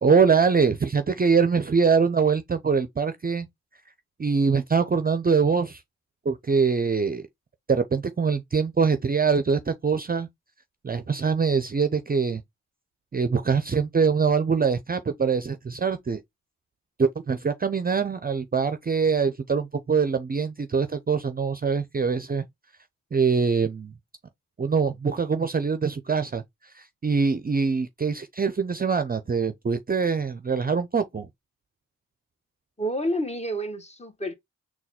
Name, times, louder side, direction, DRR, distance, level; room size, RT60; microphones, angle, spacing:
voice 1, 0.0-3.5 4.2-5.8 6.3-7.2 7.7-10.3 10.8-12.4 13.1-16.2 17.0-22.4 23.1-23.9 24.6-26.4 26.7-31.3, right 5 dB, 30° right, 0.5 m, -23 dB
voice 2, 32.8-34.3, equal, 20° left, 1.0 m, -29 dB
4.0 x 2.3 x 4.1 m
cardioid pair, 55°, 31 cm